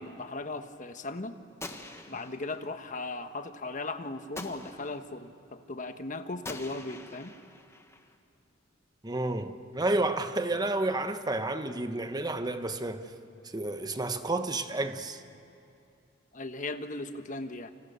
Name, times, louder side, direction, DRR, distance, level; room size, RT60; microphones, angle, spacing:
voice 1, 0.0-1.4 2.1-7.3 16.3-17.7, left 2 dB, 45° left, 1.2 m, -37 dB
Gunshot gunfire, 1.6-2.7 4.4-5.2 6.5-8.2, left 2 dB, 15° left, 1.5 m, -44 dB
voice 2, 9.0-13.1 13.5-15.2, right 2 dB, 20° right, 1.2 m, -30 dB
29.5 x 26.5 x 6.9 m
head